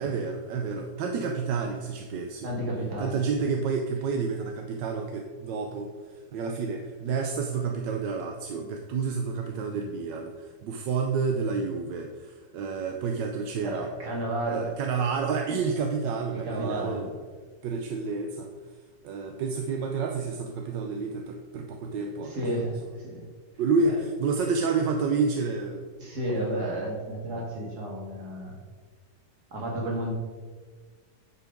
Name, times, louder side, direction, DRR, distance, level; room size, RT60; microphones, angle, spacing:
voice 1, 0.0-2.5 3.0-5.9 6.3-13.9 14.5-17.2 17.6-18.5 19.0-22.3 23.6-25.9, right 5 dB, 85° right, 3 dB, 1.4 m, -29 dB
voice 2, 2.4-3.2 13.6-14.8 16.3-17.1 22.2-23.3 23.8-23.9 26.0-28.6 29.5-30.1, right 1 dB, 65° right, -1 dB, 2.5 m, -32 dB
9.8 x 5.7 x 5.1 m, 1.5 s
omnidirectional pair, 1.9 m